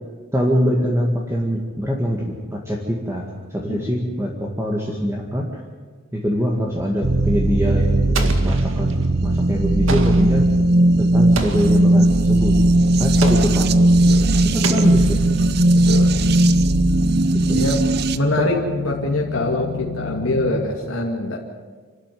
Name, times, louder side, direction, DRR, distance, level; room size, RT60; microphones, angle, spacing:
voice 1, 0.3-5.6 6.1-10.5 11.0-12.6 13.0-13.7 14.4-15.2 17.3-17.7 18.4-18.5, equal, 15° right, -2 dB, 2.0 m, -23 dB
sound 1, 7.0-18.2, right 1 dB, 50° right, 0.8 m, -17 dB
Explosion, 8.1-9.0 9.9-10.4 11.3-11.9 13.2-13.7 14.6-15.5, right 3 dB, 70° right, 2.0 m, -30 dB
sound 2, 11.1-20.5, left 2 dB, 60° left, 2.2 m, -32 dB
voice 2, 13.7-14.3 15.7-16.1 17.5-17.8 18.1-21.4, left 1 dB, 85° left, -1 dB, 2.4 m, -24 dB
27.0 x 13.0 x 9.5 m, 1.5 s
head